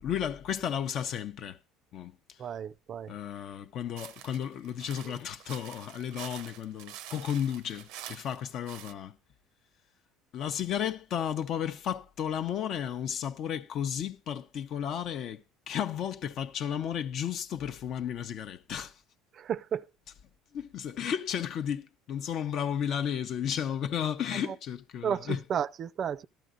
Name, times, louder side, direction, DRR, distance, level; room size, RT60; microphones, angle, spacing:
voice 1, 0.0-1.6 1.9-2.2 3.1-9.1 10.3-18.9 20.5-25.4, left 9 dB, 50° left, 0.7 m, -33 dB
voice 2, 2.4-3.1 19.3-19.8 24.5-24.6 25.0-26.3, right 8 dB, 40° right, 0.5 m, -33 dB
sound 1, 4.0-8.9, right 11 dB, 80° right, 0.7 m, -46 dB
13.5 x 12.5 x 2.5 m
cardioid pair, 125°, 0 cm